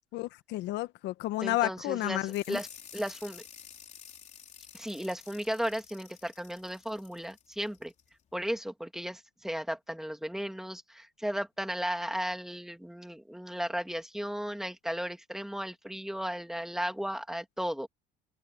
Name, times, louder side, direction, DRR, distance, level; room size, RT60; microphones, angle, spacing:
voice 1, 0.1-2.6, left 17 dB, 65° left, 1.3 m, -31 dB
voice 2, 1.4-2.7 2.9-3.4 4.7-7.9 8.3-17.9, equal, ahead, 2.7 m, -35 dB
sound 1, 2.3-8.1, left 7 dB, 35° left, 3.8 m, -51 dB
open air
supercardioid pair, 100°, 19 cm